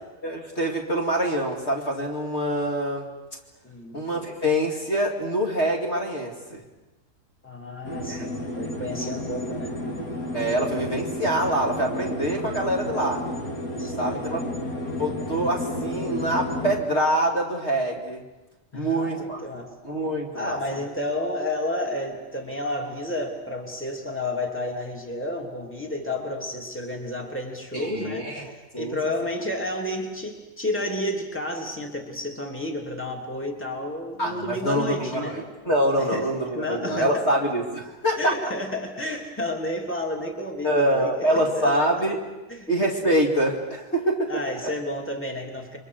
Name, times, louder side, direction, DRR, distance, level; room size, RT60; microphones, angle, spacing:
voice 1, 0.2-3.1 3.9-6.6 8.1-8.3 9.0-9.1 10.3-13.3 14.0-14.4 15.0-18.2 18.7-19.4 19.8-20.8 27.7-29.0 34.2-38.3 40.6-42.3 42.7-44.3 44.6-44.7, right 1 dB, 45° left, 0 dB, 2.7 m, -25 dB
voice 2, 3.6-4.0 7.4-9.8 13.8-14.6 18.7-19.7 20.3-35.5 36.0-36.3 36.5-37.3 38.2-41.7 42.5-42.7 44.3-45.8, left 1 dB, 5° left, 1 dB, 3.0 m, -31 dB
sound 1, 7.8-16.8, left 1 dB, 65° left, 2.9 m, -32 dB
30.0 x 23.5 x 6.5 m, 1.1 s
omnidirectional pair, 1.7 m